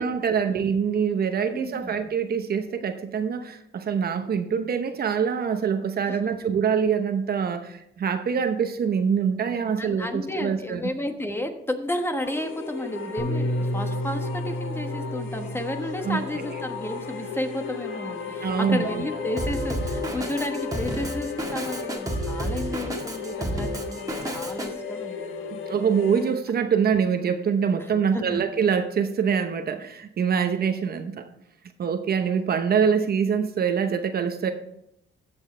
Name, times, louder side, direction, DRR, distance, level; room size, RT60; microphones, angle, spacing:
voice 1, 0.0-10.9 16.0-16.4 18.4-19.1 25.5-31.3 31.8-34.5, right 7 dB, 50° right, 8 dB, 0.9 m, -25 dB
voice 2, 1.5-2.0 6.1-6.2 9.8-25.6 28.1-28.4, left 1 dB, 10° left, 6 dB, 1.3 m, -32 dB
sound 1, 12.2-26.4, left 5 dB, 85° left, 1.3 m, -35 dB
Bass guitar, 13.2-17.7 18.4-19.4, equal, 40° left, 3.3 m, -33 dB
Drum kit, 19.4-24.7, right 1 dB, 20° right, 1.7 m, -31 dB
16.0 x 6.3 x 3.3 m, 0.79 s
cardioid pair, 90°, 20 cm